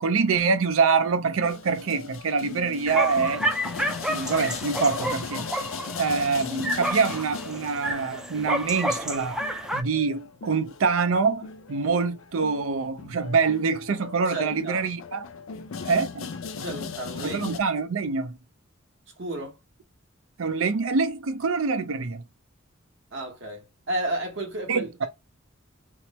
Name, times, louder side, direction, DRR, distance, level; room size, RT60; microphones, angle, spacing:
voice 1, 0.0-3.4 4.1-5.5 6.0-9.4 9.7-15.3 15.9-16.3 17.2-18.4 20.4-22.2 24.7-25.1, right 5 dB, 90° right, 0.5 m, -25 dB
sound 1, 1.4-17.6, left 5 dB, 75° left, 0.5 m, -38 dB
sound 2, 2.9-9.8, equal, 5° right, 0.3 m, -30 dB
voice 2, 14.2-14.9 16.6-17.4 19.2-19.6 23.1-25.1, right 1 dB, 65° right, 1.2 m, -32 dB
3.0 x 2.0 x 4.1 m
head